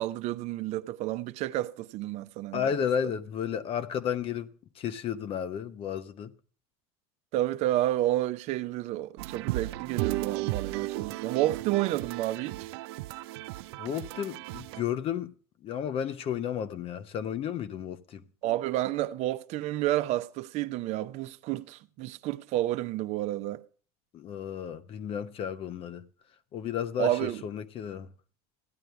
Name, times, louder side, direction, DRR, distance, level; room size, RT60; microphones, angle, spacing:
voice 1, 0.0-2.7 7.3-12.7 18.4-23.6 27.0-27.4, right 15 dB, 55° right, 0.7 m, -30 dB
voice 2, 2.5-4.5 4.8-6.3 13.8-15.3 15.6-18.2 24.1-26.1 26.5-28.1, left 8 dB, 45° left, 0.9 m, -33 dB
sound 1, 9.2-14.8, right 18 dB, 75° right, 0.4 m, -35 dB
15.0 x 9.1 x 3.3 m
supercardioid pair, 100°, 13 cm